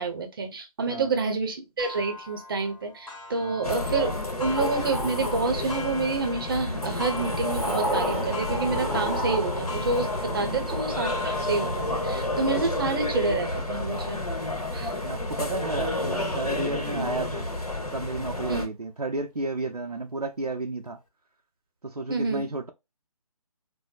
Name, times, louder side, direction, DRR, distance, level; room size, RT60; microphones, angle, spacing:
voice 1, 0.0-14.2 14.7-14.9 16.9-17.1 18.5-18.7 22.1-22.4, right 3 dB, 35° right, 0.7 m, -28 dB
Clock, 1.8-17.1 17.7-17.8 18.3-18.4 19.4-19.5, left 3 dB, 55° left, 1.4 m, -42 dB
sound 1, 3.6-18.7, left 1 dB, 75° left, 1.0 m, -30 dB
Sliding door, 4.5-6.0 6.8-11.4, equal, 10° left, 1.0 m, -33 dB
voice 2, 15.0-17.5 17.9-21.0 21.8-22.7, right 2 dB, 85° right, 0.5 m, -32 dB
4.3 x 2.1 x 2.4 m
figure-of-eight pair, 145°, 19 cm